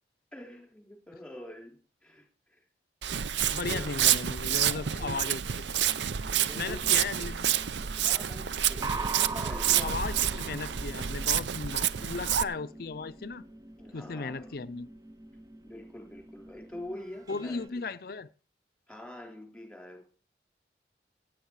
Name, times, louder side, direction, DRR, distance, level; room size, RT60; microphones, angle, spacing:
voice 1, 0.3-2.6 3.7-5.2 6.5-6.8 8.0-10.4 13.8-14.5 15.6-17.8 18.9-20.0, left 1 dB, 5° left, 3.6 m, -46 dB
Walk footsteps, 3.0-12.4, right 10 dB, 90° right, 0.6 m, -28 dB
voice 2, 3.5-5.7 6.6-7.5 9.8-13.4 13.9-14.9 17.3-18.3, left 4 dB, 55° left, 0.5 m, -36 dB
sound 1, 5.8-17.7, right 3 dB, 20° right, 0.6 m, -43 dB
16.0 x 8.9 x 4.8 m
head